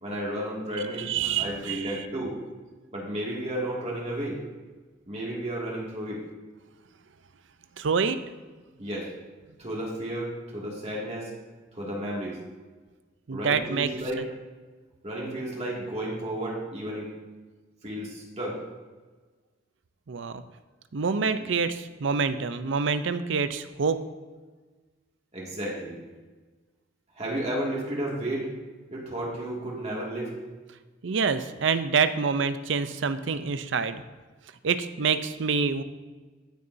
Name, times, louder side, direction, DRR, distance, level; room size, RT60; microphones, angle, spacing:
voice 1, 0.0-1.1 1.4-2.4 2.9-4.4 5.1-6.2 8.8-9.1 9.6-11.3 11.7-12.4 13.3-14.2 15.0-17.1 17.8-18.6 21.4-21.5 25.3-26.0 27.1-28.5 28.9-30.3, right 1 dB, 35° right, -4 dB, 2.2 m, -32 dB
voice 2, 1.1-1.9 7.8-8.2 13.3-13.9 20.1-20.4 20.9-24.0 31.0-34.0 34.6-35.8, right 5 dB, 65° right, 11 dB, 0.5 m, -26 dB
15.5 x 6.8 x 2.7 m, 1.3 s
head